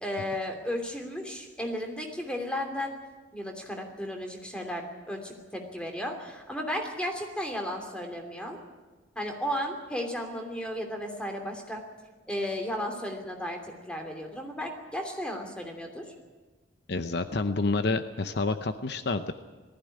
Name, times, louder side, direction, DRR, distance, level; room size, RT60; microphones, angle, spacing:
voice 1, 0.0-2.9 3.3-8.6 9.1-11.8 12.3-16.1, equal, 5° left, 3 dB, 2.9 m, -34 dB
voice 2, 16.9-19.3, left 3 dB, 60° left, 9 dB, 0.8 m, -28 dB
19.5 x 15.0 x 10.0 m, 1.3 s
head